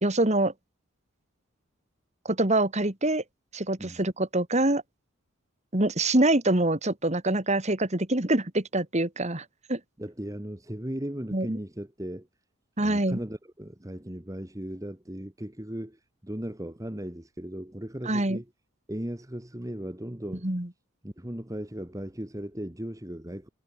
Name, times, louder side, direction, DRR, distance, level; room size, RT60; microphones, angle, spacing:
voice 1, 0.0-0.5 2.3-3.2 3.5-4.8 5.7-9.8 11.3-11.6 12.8-13.2 18.0-18.4 20.4-20.7, right 1 dB, 30° right, 2.1 m, -25 dB
voice 2, 10.0-12.3 12.8-16.0 16.2-18.4 18.9-20.5 21.0-23.5, equal, 15° right, 1.4 m, -37 dB
head